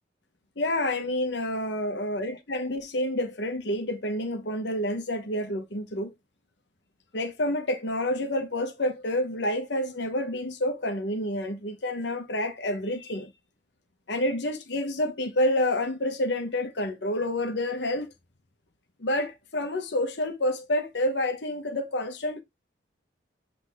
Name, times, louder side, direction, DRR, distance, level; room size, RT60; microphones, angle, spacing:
voice 1, 0.6-6.1 7.1-13.3 14.1-18.1 19.0-22.4, left 1 dB, 65° left, 1.0 m, -28 dB
8.1 x 3.4 x 3.4 m
head